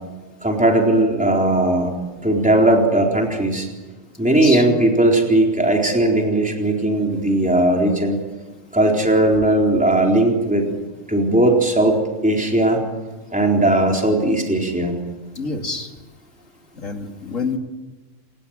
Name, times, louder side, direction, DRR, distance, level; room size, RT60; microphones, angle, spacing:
voice 1, 0.4-1.9 2.2-3.7 4.2-8.2 8.7-10.6 11.1-12.8 13.3-15.0, right 1 dB, 5° right, 0 dB, 4.0 m, -18 dB
voice 2, 4.2-4.7 15.4-15.9 16.8-17.6, left 4 dB, 85° left, 4 dB, 3.0 m, -27 dB
28.5 x 19.0 x 9.0 m, 1.2 s
omnidirectional pair, 1.3 m